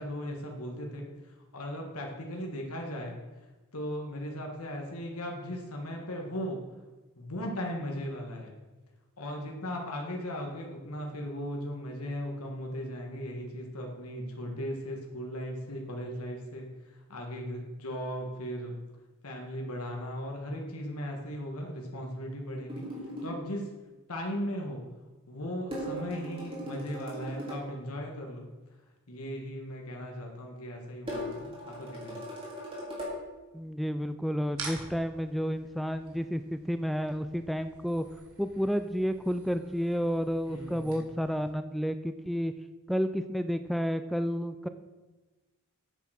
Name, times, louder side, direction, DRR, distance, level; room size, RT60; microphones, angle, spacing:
voice 1, 0.0-3.1 3.7-6.6 7.2-8.5 9.2-18.8 19.2-22.8 23.2-23.7 24.1-24.8 25.3-28.4 29.1-32.3 40.5-41.1, equal, 80° left, 1 dB, 1.6 m, -37 dB
sound 1, 22.7-23.4 25.7-27.6 31.1-33.2, equal, 25° right, 3.3 m, -38 dB
voice 2, 33.5-38.0 38.4-42.5 42.9-44.7, equal, ahead, 10 dB, 0.3 m, -31 dB
sound 2, 34.5-41.5, right 4 dB, 75° right, 2.5 m, -48 dB
9.1 x 7.6 x 6.4 m, 1.2 s
head